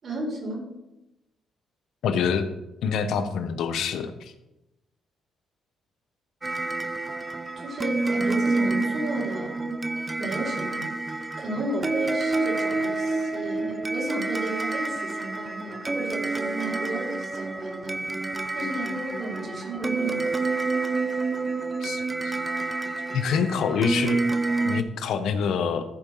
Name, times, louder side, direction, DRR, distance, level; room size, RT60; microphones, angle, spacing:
voice 1, 0.0-0.7 7.6-9.7 10.2-10.9 11.4-18.2 18.5-20.5, right 1 dB, 45° right, -1 dB, 4.4 m, -33 dB
voice 2, 2.0-2.5 2.8-4.3 21.8-22.4 23.1-24.2 24.6-25.8, left 6 dB, 75° left, 9 dB, 0.9 m, -26 dB
sound 1, 6.4-24.8, right 3 dB, 20° right, 0.6 m, -28 dB
14.0 x 4.7 x 5.5 m, 0.95 s
cardioid pair, 90°, 0 cm